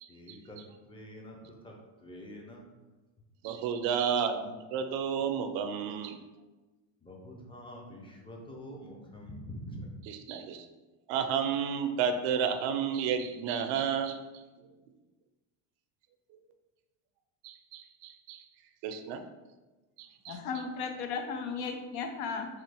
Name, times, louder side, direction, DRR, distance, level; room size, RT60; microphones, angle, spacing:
voice 1, 0.1-0.6 0.9-1.4 1.6-1.7 2.0-2.6 7.0-9.9, equal, 10° left, 0 dB, 0.5 m, -45 dB
voice 2, 3.4-6.2 10.0-10.7 11.1-14.2 17.4-18.4 18.8-19.2 20.0-20.4, right 7 dB, 70° right, 7 dB, 0.5 m, -31 dB
voice 3, 20.3-22.5, left 5 dB, 75° left, 5 dB, 0.6 m, -35 dB
3.1 x 2.4 x 3.4 m, 1.2 s
supercardioid pair, 95°, 47 cm